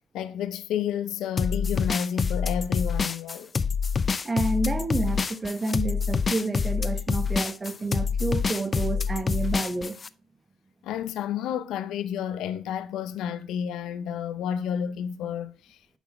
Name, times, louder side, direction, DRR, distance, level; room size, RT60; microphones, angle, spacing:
voice 1, 0.1-3.5 10.8-15.8, left 8 dB, 85° left, 0.5 m, -30 dB
sound 1, 1.4-10.1, left 5 dB, 35° left, 0.4 m, -26 dB
voice 2, 4.2-10.0, right 2 dB, 25° right, 1.0 m, -29 dB
9.1 x 3.9 x 4.3 m
cardioid pair, 90°, 0 cm